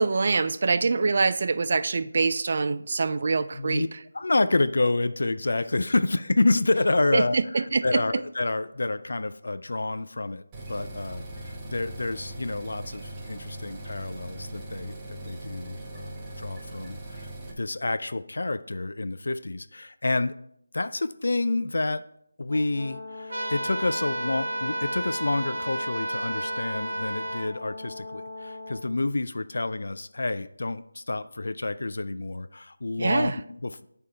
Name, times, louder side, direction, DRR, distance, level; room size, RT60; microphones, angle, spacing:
voice 1, 0.0-3.9 7.1-8.0 33.0-33.3, right 4 dB, 45° right, 13 dB, 0.3 m, -24 dB
voice 2, 3.5-3.9 4.1-10.4 10.7-14.9 15.3-20.3 20.7-22.0 22.4-33.8, left 2 dB, 65° left, 12 dB, 0.4 m, -28 dB
sound 1, 10.5-17.5, right 1 dB, 15° right, 0.9 m, -40 dB
Brass instrument, 22.5-28.9, left 3 dB, 15° left, 2.2 m, -40 dB
sound 2, 23.3-27.5, right 1 dB, 70° right, 0.9 m, -32 dB
8.4 x 3.5 x 4.4 m, 0.70 s
figure-of-eight pair, 165°, 0 cm